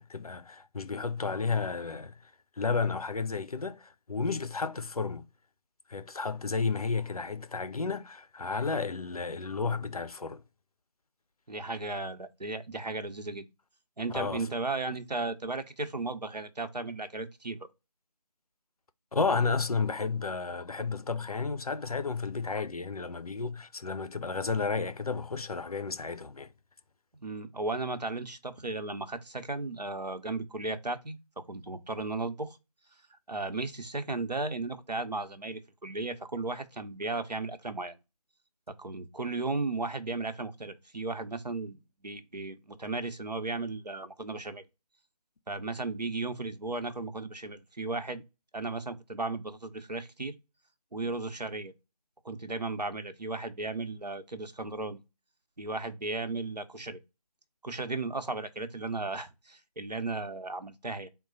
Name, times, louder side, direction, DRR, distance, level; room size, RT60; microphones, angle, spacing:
voice 1, 0.0-2.2 2.6-5.2 5.9-10.4 14.1-14.5 19.1-26.5, left 4 dB, 65° left, 0.6 m, -32 dB
voice 2, 11.5-13.5 14.0-17.6 27.2-32.6 33.3-38.0 38.7-41.8 42.0-44.6 45.5-48.2 48.5-50.3 50.9-51.7 52.2-55.0 55.6-57.0 57.6-61.1, right 3 dB, 90° right, 0.9 m, -35 dB
3.8 x 2.3 x 4.0 m
figure-of-eight pair, 165°, 20 cm